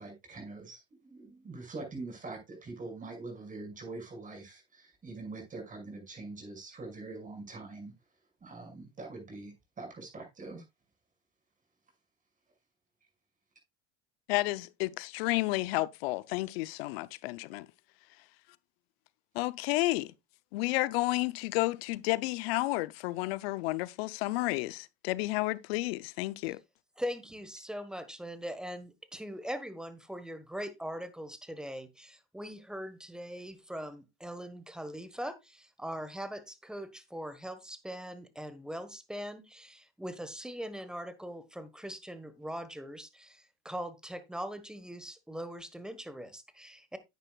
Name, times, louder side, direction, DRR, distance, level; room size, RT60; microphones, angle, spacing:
voice 1, 0.0-7.9 8.4-10.6, right 3 dB, 25° right, 6.0 m, -44 dB
voice 2, 14.3-17.7 19.3-20.1 20.5-26.6, left 20 dB, 75° left, 0.7 m, -31 dB
voice 3, 27.0-47.0, equal, ahead, 1.4 m, -41 dB
10.0 x 9.2 x 2.4 m
supercardioid pair, 100°, 30 cm